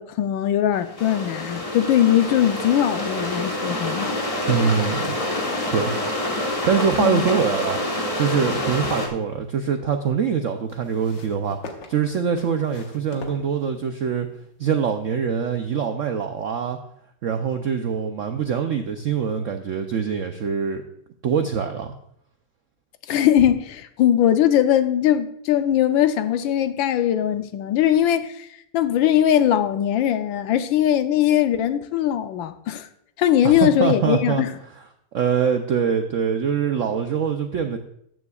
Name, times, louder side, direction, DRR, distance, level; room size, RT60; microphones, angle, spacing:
voice 1, 0.0-4.1 7.0-7.2 23.1-28.5 28.7-32.9 33.2-34.5, left 10 dB, 85° left, 1.4 m, -20 dB
sound 1, 0.7-9.1, left 1 dB, 20° left, 1.0 m, -27 dB
voice 2, 4.5-5.2 5.7-5.9 6.6-7.8 8.2-11.6 11.9-14.3 14.6-16.8 17.2-20.8 21.2-21.9 33.4-34.4 35.1-37.8, right 7 dB, 80° right, 0.7 m, -23 dB
sound 2, 9.0-9.6 10.7-14.1 15.0-15.1, left 3 dB, 70° left, 1.8 m, -43 dB
14.0 x 9.6 x 2.4 m
omnidirectional pair, 2.1 m